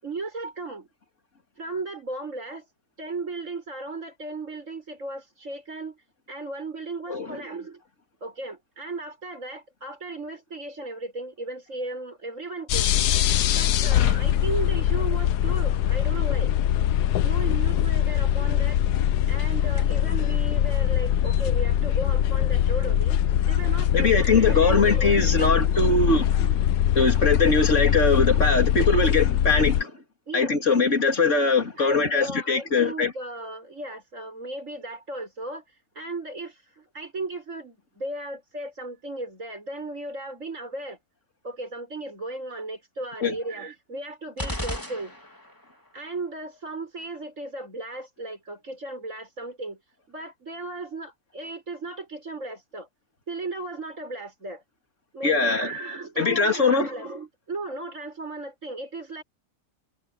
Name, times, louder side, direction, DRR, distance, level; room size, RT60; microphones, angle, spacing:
voice 1, 0.0-0.9 1.6-2.7 3.0-6.0 6.3-7.8 8.2-12.9 13.5-16.5 17.2-18.8 19.3-23.2 23.5-26.0 26.4-26.6 30.3-30.8 31.8-35.6 35.9-41.0 41.4-45.1 45.9-49.8 50.1-52.9 53.3-54.6 55.1-59.2, right 2 dB, 50° right, 7.8 m, -36 dB
sound 1, 12.7-29.8, left 11 dB, 80° left, 1.3 m, -22 dB
voice 2, 23.9-26.4 26.9-29.9 30.3-33.1 43.2-43.3 55.2-55.7 56.2-56.9, left 3 dB, 45° left, 3.2 m, -21 dB
sound 2, 44.4-45.7, left 1 dB, 10° left, 3.4 m, -33 dB
omnidirectional pair, 1.8 m